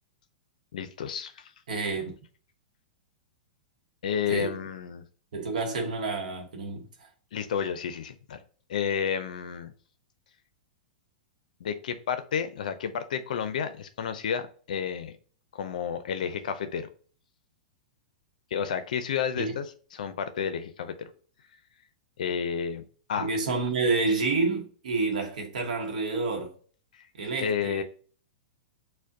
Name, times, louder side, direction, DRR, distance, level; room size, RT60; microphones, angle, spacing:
voice 1, 0.7-1.5 4.0-5.0 7.3-8.4 8.7-9.7 11.6-15.1 15.5-16.9 18.5-20.9 22.2-22.8 23.1-23.3 26.9-27.0 27.4-27.8, left 7 dB, 70° left, 0.4 m, -31 dB
voice 2, 1.7-2.1 4.3-4.6 5.3-7.1 19.4-19.5 23.2-26.5 27.1-27.8, right 3 dB, 75° right, 0.8 m, -29 dB
6.2 x 2.1 x 2.6 m
hypercardioid pair, 120°, 4 cm